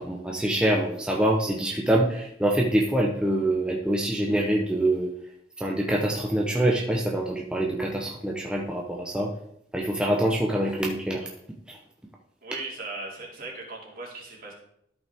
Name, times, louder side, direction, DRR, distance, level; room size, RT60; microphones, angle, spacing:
voice 1, 0.0-5.1 5.6-9.3 9.7-11.3 11.7-11.8, right 1 dB, 5° right, -1 dB, 0.8 m, -25 dB
voice 2, 12.4-14.5, right 3 dB, 50° right, -2 dB, 2.6 m, -38 dB
12.5 x 5.5 x 3.5 m, 0.73 s
head